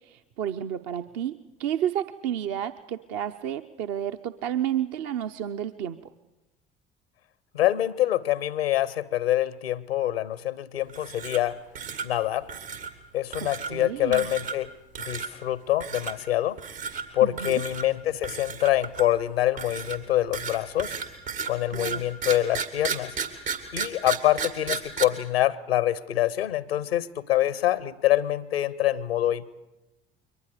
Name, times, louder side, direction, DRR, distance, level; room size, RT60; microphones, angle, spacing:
voice 1, 0.1-1.3 1.6-6.0 13.4-14.4 17.2-17.6 21.7-22.0, right 10 dB, 60° right, 8 dB, 0.7 m, -31 dB
voice 2, 7.5-11.6 12.0-12.5 13.1-14.7 15.0-16.6 17.1-21.0 21.5-23.1 23.7-29.5, left 13 dB, 85° left, 19 dB, 0.7 m, -25 dB
sound 1, 10.9-11.5 11.8-12.1 12.5-12.9 13.3-13.7 14.1-14.7 15.0-15.3 15.8-16.1 16.6-17.0 17.4-17.8 18.2-19.2 19.6-25.0, right 6 dB, 75° right, 2.2 m, -33 dB
29.5 x 23.0 x 5.0 m, 1.0 s
figure-of-eight pair, 55°, 29 cm